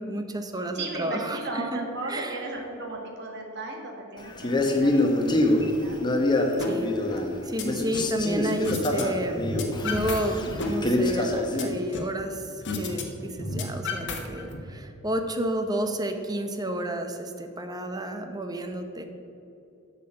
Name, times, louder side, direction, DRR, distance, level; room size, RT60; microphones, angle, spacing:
voice 1, 0.0-2.4 6.6-6.9 7.4-9.4 9.8-19.0, right 1 dB, 20° right, 6 dB, 0.7 m, -31 dB
voice 2, 0.7-6.0, right 2 dB, 50° right, 1 dB, 1.7 m, -36 dB
Male speech man speaking, 4.4-7.4 7.6-11.8, left 2 dB, 20° left, 0.9 m, -25 dB
sound 1, 6.6-6.7 7.1-8.1 8.6-9.0 9.3-10.2 10.5-12.2 12.6-13.0 13.3-14.6, left 3 dB, 55° left, 1.2 m, -32 dB
8.2 x 5.8 x 7.7 m, 2.8 s
head